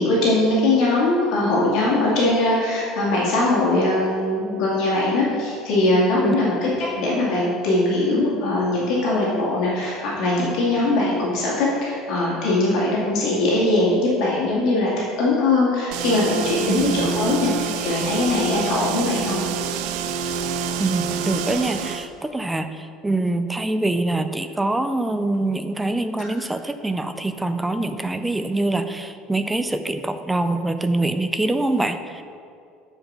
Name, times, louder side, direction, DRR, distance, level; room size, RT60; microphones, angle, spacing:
voice 1, 0.0-19.4 26.2-26.3, left 2 dB, 50° left, -6 dB, 2.1 m, -21 dB
sound 1, 15.9-22.1, right 6 dB, 65° right, 0.5 m, -27 dB
voice 2, 16.7-17.1 20.8-32.2, right 2 dB, 5° right, 9 dB, 0.3 m, -24 dB
7.9 x 5.2 x 6.0 m, 2.4 s
cardioid pair, 175°, 0 cm